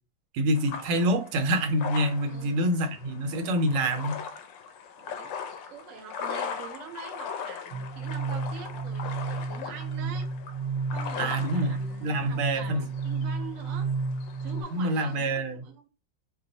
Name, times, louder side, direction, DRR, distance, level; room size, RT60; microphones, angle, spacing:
voice 1, 0.3-4.2 11.2-11.8 12.0-12.9 14.7-15.7, right 1 dB, 85° right, 1.6 m, -26 dB
sound 1, 0.5-15.2, left 6 dB, 75° left, 1.2 m, -40 dB
voice 2, 2.3-2.7 5.0-5.3 5.7-10.3 10.9-13.9 14.4-15.9, right 6 dB, 55° right, 0.9 m, -44 dB
sound 2, 7.7-14.6, right 4 dB, 70° right, 0.6 m, -32 dB
4.6 x 2.3 x 3.9 m
omnidirectional pair, 2.2 m